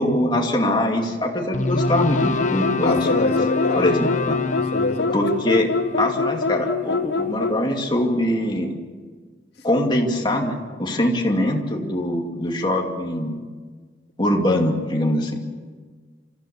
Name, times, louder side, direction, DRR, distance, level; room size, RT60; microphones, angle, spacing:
voice 1, 0.0-3.3 3.7-4.3 5.1-5.7 6.0-8.8 9.6-13.4 14.2-15.4, left 1 dB, 25° left, 1 dB, 2.6 m, -22 dB
sound 1, 1.5-7.8, left 3 dB, 45° left, 0.8 m, -28 dB
sound 2, 1.8-7.6, left 4 dB, 85° left, 0.7 m, -25 dB
voice 2, 2.8-4.3 4.7-5.4, left 2 dB, 65° left, 5 dB, 1.9 m, -26 dB
27.5 x 15.0 x 7.3 m, 1.5 s
head